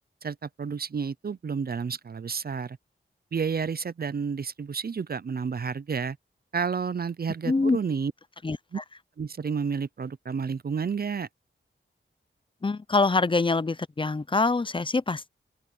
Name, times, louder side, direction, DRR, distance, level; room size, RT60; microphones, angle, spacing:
voice 1, 0.2-2.8 3.3-6.2 6.5-8.1 8.7-8.8 9.2-11.3, right 6 dB, 45° right, 0.5 m, -30 dB
voice 2, 7.4-7.8 8.4-8.8 12.6-15.3, left 3 dB, 25° left, 0.5 m, -25 dB
open air
wide cardioid pair, 115°, 21 cm